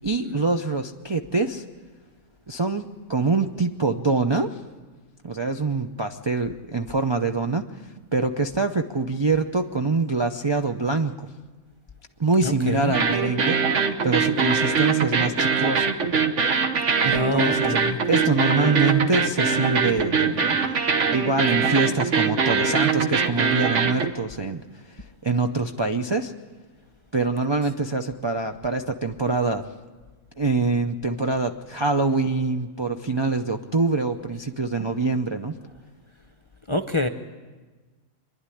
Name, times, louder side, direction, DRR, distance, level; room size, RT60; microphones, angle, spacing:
voice 1, 0.0-1.7 2.5-4.5 5.2-7.7 8.1-11.3 12.2-13.6 14.0-15.9 17.0-20.6 21.1-24.6 25.2-26.3 27.1-29.6 30.4-35.5, right 3 dB, 35° right, 3 dB, 0.4 m, -24 dB
voice 2, 12.4-12.9 17.1-18.0 36.7-37.1, left 2 dB, 25° left, 7 dB, 0.7 m, -26 dB
sound 1, 12.9-24.1, right 5 dB, 55° right, 1.4 m, -22 dB
25.0 x 11.0 x 9.9 m, 1.3 s
omnidirectional pair, 1.5 m